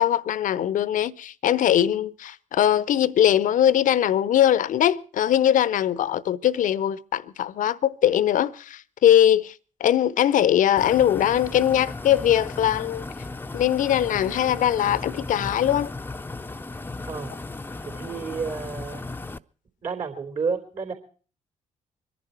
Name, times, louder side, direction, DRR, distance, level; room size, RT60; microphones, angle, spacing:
voice 1, 0.0-9.5 9.8-13.1 13.5-15.9, left 10 dB, 55° left, 0.7 m, -21 dB
sound 1, 10.8-19.4, left 3 dB, 15° left, 0.6 m, -36 dB
voice 2, 17.1-17.4 17.8-19.1 19.8-20.9, right 5 dB, 55° right, 3.5 m, -31 dB
24.5 x 11.0 x 4.4 m
figure-of-eight pair, 40°, 16 cm